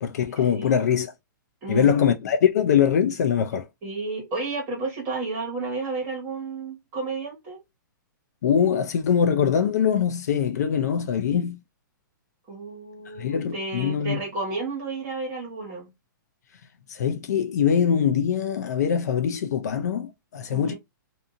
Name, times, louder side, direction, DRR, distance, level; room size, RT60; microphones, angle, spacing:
voice 1, 0.0-1.1 1.7-3.7 8.4-11.6 13.2-14.2 16.9-20.7, left 8 dB, 50° left, 0.4 m, -23 dB
voice 2, 1.6-1.9 3.8-7.6 12.5-15.9 20.5-20.7, right 3 dB, 20° right, 1.3 m, -32 dB
2.6 x 2.5 x 2.6 m
hypercardioid pair, 175°, 11 cm